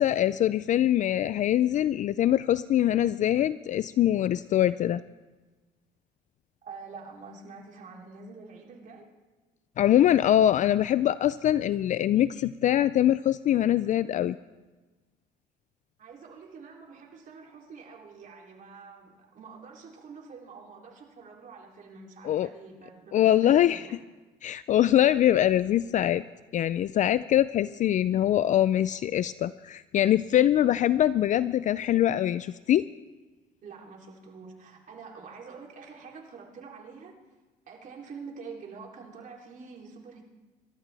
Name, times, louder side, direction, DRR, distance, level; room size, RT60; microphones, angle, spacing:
voice 1, 0.0-5.0 9.8-14.4 22.2-22.5 23.1-23.8 24.4-26.2 26.5-32.9, left 12 dB, 45° left, 15 dB, 0.4 m, -23 dB
voice 2, 6.6-9.1 16.0-23.9 33.6-37.1 37.7-40.2, right 5 dB, 50° right, -1 dB, 3.2 m, -46 dB
26.5 x 13.0 x 3.4 m, 1.2 s
cardioid pair, 110°, 17 cm